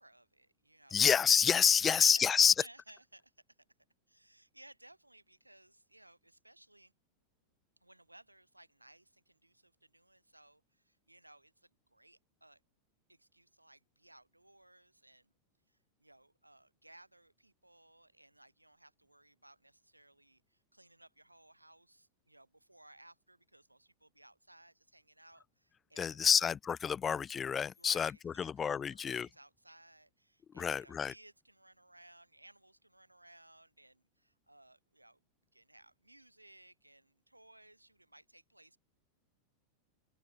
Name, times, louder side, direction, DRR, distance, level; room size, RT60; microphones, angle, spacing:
voice 1, 0.0-1.1 1.7-3.3 4.1-6.9 7.8-12.6 13.1-15.3 15.7-26.4 27.8-35.2 35.5-38.8, right 1 dB, 85° right, 7.1 m, -60 dB
voice 2, 0.9-2.5 26.0-29.3 30.5-31.1, left 7 dB, 20° left, 1.7 m, -28 dB
figure-of-eight pair, 90°, 0 cm